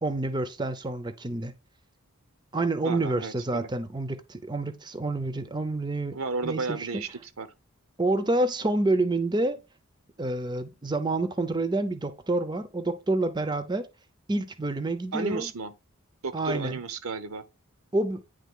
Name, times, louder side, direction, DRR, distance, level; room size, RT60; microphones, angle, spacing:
voice 1, 0.0-1.6 2.5-7.0 8.0-9.6 10.2-13.9 14.3-15.5 16.3-16.8 17.9-18.2, right 2 dB, 20° right, 0.6 m, -28 dB
voice 2, 2.8-3.7 6.1-7.5 15.1-15.7 16.2-17.4, right 3 dB, 80° right, 0.9 m, -33 dB
9.3 x 3.3 x 3.7 m
head